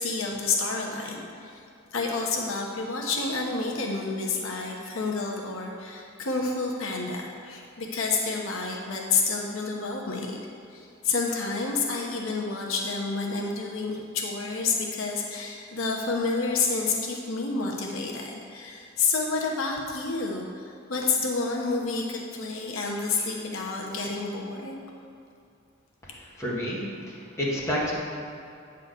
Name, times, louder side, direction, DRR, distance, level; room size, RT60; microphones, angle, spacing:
voice 1, 0.0-1.6 1.9-10.4 10.7-24.8, left 4 dB, 85° left, -1 dB, 1.0 m, -29 dB
voice 2, 26.1-27.9, equal, 15° left, -7 dB, 1.7 m, -30 dB
9.2 x 4.1 x 6.6 m, 2.5 s
head